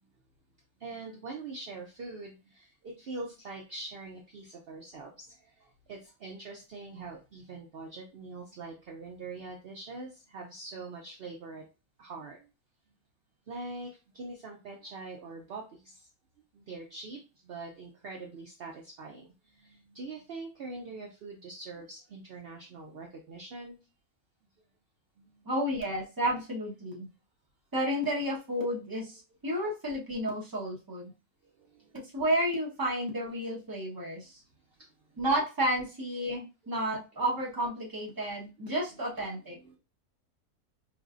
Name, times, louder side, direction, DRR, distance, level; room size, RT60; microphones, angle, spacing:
voice 1, 0.8-11.6 12.0-12.5 13.5-16.1 16.5-23.8 25.2-25.5 31.4-32.0 34.1-34.2 34.8-34.9 38.9-39.0 39.6-39.8, right 3 dB, 60° right, 1 dB, 0.6 m, -43 dB
voice 2, 25.4-27.1 27.7-31.1 32.1-34.4 35.2-39.6, right 1 dB, 15° right, -4 dB, 1.0 m, -31 dB
4.8 x 2.6 x 2.4 m, 0.30 s
omnidirectional pair, 1.6 m